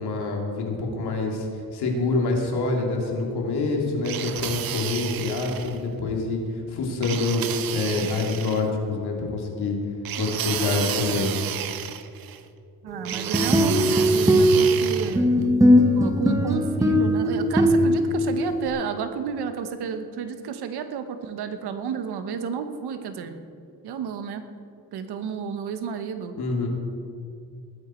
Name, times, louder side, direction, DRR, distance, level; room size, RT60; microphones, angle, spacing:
voice 1, 0.0-6.4 6.7-7.4 7.7-9.8 10.2-11.3 26.4-26.7, left 3 dB, 90° left, 0 dB, 2.6 m, -26 dB
sound 1, 4.0-5.8 7.0-8.7 10.0-12.4 13.0-15.2, right 11 dB, 65° right, 0.7 m, -31 dB
voice 2, 12.8-15.4 15.9-23.4 23.8-24.4 24.9-26.3, right 6 dB, 90° right, 8 dB, 1.2 m, -31 dB
sound 2, 13.1-18.7, equal, 10° right, 1.0 m, -20 dB
20.0 x 9.3 x 4.4 m, 2.4 s
cardioid pair, 120°, 38 cm